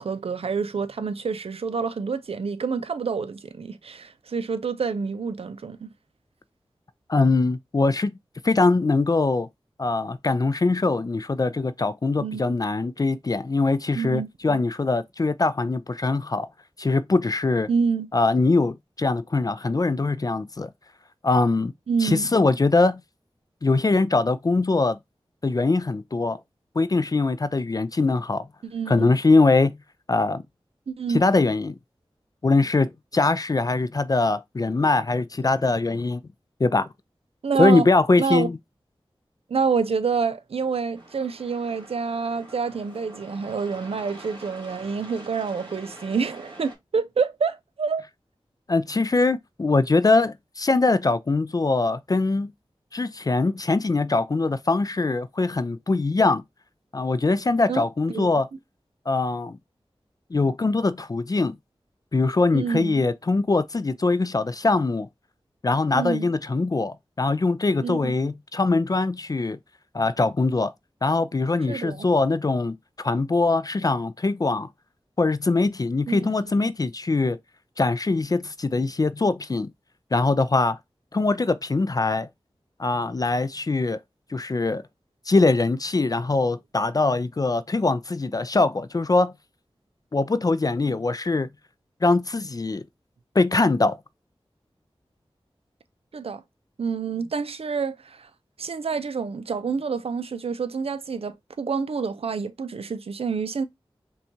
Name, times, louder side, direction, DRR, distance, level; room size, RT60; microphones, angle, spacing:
voice 1, 0.0-5.9 12.2-12.4 13.9-14.6 17.7-18.1 21.9-22.3 28.6-29.1 30.9-31.2 37.4-37.9 38.2-38.5 39.5-48.0 57.7-58.3 62.5-63.0 65.9-66.3 67.8-68.1 71.7-72.0 76.1-76.3 96.1-96.4 96.8-98.3 98.6-103.6, right 5 dB, 75° right, 0.4 m, -27 dB
voice 2, 7.1-8.1 8.4-9.5 9.8-16.5 16.8-17.7 18.1-20.7 21.2-21.7 22.0-23.0 23.6-25.0 25.4-26.4 26.8-28.5 28.9-29.8 30.1-30.4 31.1-31.8 32.4-36.2 36.6-36.9 37.6-38.6 48.7-52.5 52.9-56.4 56.9-58.5 59.1-59.6 60.3-61.6 62.1-65.1 65.6-69.6 69.9-70.7 71.0-74.7 75.2-77.4 77.8-79.7 80.1-80.8 81.1-82.3 82.8-84.0 84.3-84.8 85.3-89.3 90.1-91.5 92.0-92.8 93.4-94.0, left 3 dB, 40° left, 0.3 m, -22 dB
sound 1, 41.0-46.8, right 1 dB, 50° right, 1.6 m, -45 dB
5.5 x 2.3 x 2.7 m
wide cardioid pair, 50°, 10 cm